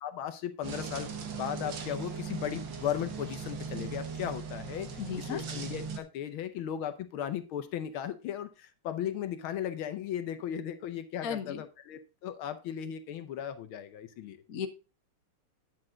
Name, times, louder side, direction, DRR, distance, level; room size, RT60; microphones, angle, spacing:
voice 1, 0.0-14.4, left 10 dB, 75° left, 10 dB, 1.6 m, -36 dB
sound 1, 0.6-6.0, right 5 dB, 60° right, 2.0 m, -39 dB
voice 2, 5.0-5.4 11.2-11.6 14.5-14.7, left 7 dB, 50° left, 8 dB, 1.2 m, -35 dB
9.8 x 7.6 x 3.8 m, 0.30 s
omnidirectional pair, 2.4 m